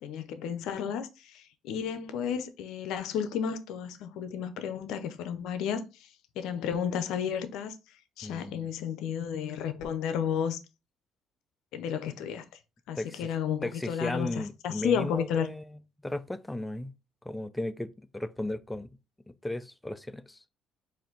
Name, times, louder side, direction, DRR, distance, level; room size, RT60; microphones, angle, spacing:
voice 1, 0.0-5.8 6.4-7.8 8.2-10.6 11.7-12.4 12.9-14.3 14.6-15.5, left 8 dB, 80° left, 0.5 m, -32 dB
voice 2, 8.2-8.7 13.0-13.3 13.6-16.9 17.2-18.9 19.3-20.5, left 1 dB, 10° left, 0.4 m, -36 dB
4.3 x 2.6 x 3.8 m
cardioid pair, 90°, 0 cm